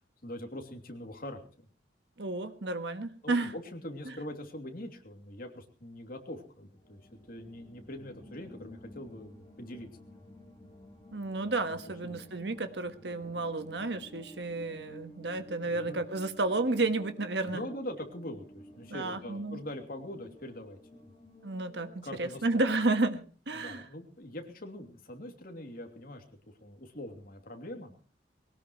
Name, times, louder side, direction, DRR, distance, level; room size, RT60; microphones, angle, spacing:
voice 1, 0.2-1.7 3.2-7.0 7.3-9.9 11.6-12.2 15.6-16.0 17.5-21.1 22.0-22.6 23.5-26.2 26.6-27.9, left 1 dB, 50° left, 3 dB, 2.8 m, -43 dB
voice 2, 2.2-3.5 11.1-17.7 18.9-19.6 21.4-23.8, right 2 dB, 65° right, 9 dB, 1.4 m, -32 dB
sound 1, 6.8-22.5, equal, 20° left, 3.0 m, -53 dB
20.5 x 18.0 x 3.1 m, 0.39 s
head